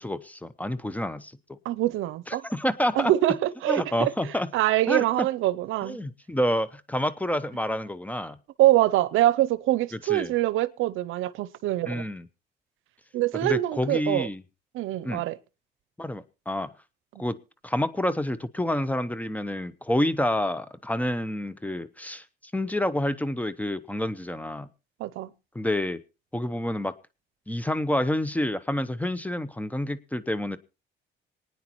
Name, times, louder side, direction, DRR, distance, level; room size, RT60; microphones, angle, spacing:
voice 1, 0.0-1.6 2.3-3.1 3.7-4.5 4.9-5.3 5.8-8.4 9.9-10.3 11.9-12.3 13.3-14.4 15.0-15.2 16.0-16.7 17.2-17.4 17.6-22.2 22.5-24.7 25.5-26.0 26.3-26.9 27.5-30.6, left 1 dB, 5° left, 0.7 m, -28 dB
voice 2, 1.6-2.4 3.0-4.1 4.5-6.0 8.6-12.0 13.1-14.3 14.7-15.4 17.1-17.2 25.0-25.3, right 15 dB, 85° right, 0.6 m, -24 dB
26.0 x 9.5 x 3.0 m
cardioid pair, 90°, 20 cm